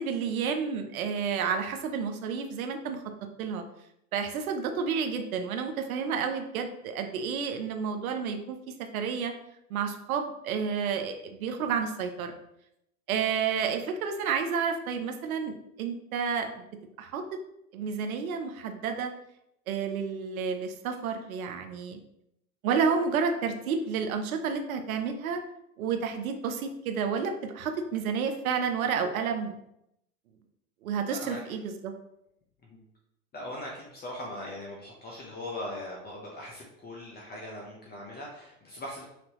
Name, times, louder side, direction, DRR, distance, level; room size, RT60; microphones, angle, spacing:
voice 1, 0.0-3.0 3.4-3.6 4.1-8.6 8.9-9.3 9.7-12.3 13.1-16.7 17.0-17.4 17.7-19.1 19.7-22.0 22.6-25.4 25.8-29.6 30.8-31.9, right 6 dB, 75° right, 6 dB, 0.8 m, -30 dB
voice 2, 31.1-31.4 32.7-32.8 33.3-39.0, left 1 dB, 25° left, -3 dB, 0.9 m, -40 dB
6.0 x 2.9 x 3.0 m, 0.80 s
hypercardioid pair, 105°, 42 cm